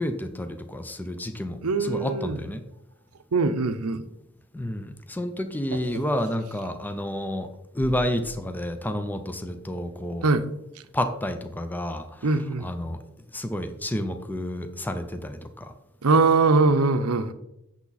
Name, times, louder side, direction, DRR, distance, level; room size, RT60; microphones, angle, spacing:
voice 1, 0.0-2.6 4.5-7.5 7.7-10.2 10.9-13.0 13.3-15.7, left 1 dB, 10° left, 8 dB, 0.5 m, -30 dB
voice 2, 1.6-2.4 3.3-4.0 5.7-6.0 10.2-10.4 12.2-12.7 16.0-17.3, right 3 dB, 85° right, 10 dB, 0.7 m, -22 dB
8.4 x 7.1 x 4.0 m, 0.86 s
head